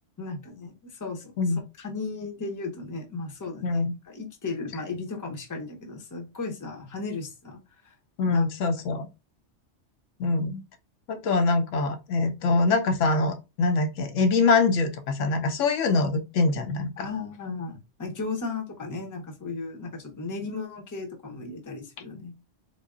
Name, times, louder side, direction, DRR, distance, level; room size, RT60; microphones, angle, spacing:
voice 1, 0.2-1.3 1.8-7.9 8.3-8.5 17.0-22.3, left 3 dB, 20° left, 0.6 m, -35 dB
voice 2, 3.6-3.9 8.2-9.1 10.2-10.6 11.1-17.1, left 3 dB, 85° left, 1.0 m, -24 dB
3.7 x 2.1 x 3.6 m
omnidirectional pair, 1.3 m